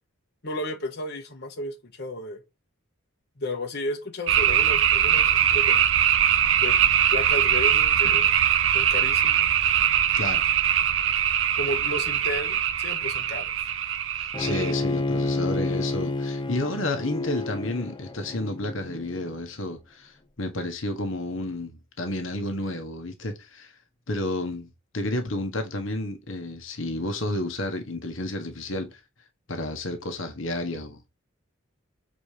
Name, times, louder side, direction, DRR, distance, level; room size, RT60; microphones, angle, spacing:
voice 1, 0.4-2.4 3.4-5.8 6.6-6.8 7.1-8.3 8.7-9.5 11.6-13.5, left 1 dB, 55° left, 1.4 m, -33 dB
sound 1, 4.3-14.7, right 9 dB, 65° right, 0.7 m, -22 dB
voice 2, 10.1-10.5 14.1-23.8 24.1-29.0 29.5-31.0, left 1 dB, 70° left, 1.4 m, -31 dB
Bowed string instrument, 14.3-19.4, left 2 dB, 25° left, 0.7 m, -30 dB
7.5 x 4.3 x 5.0 m
head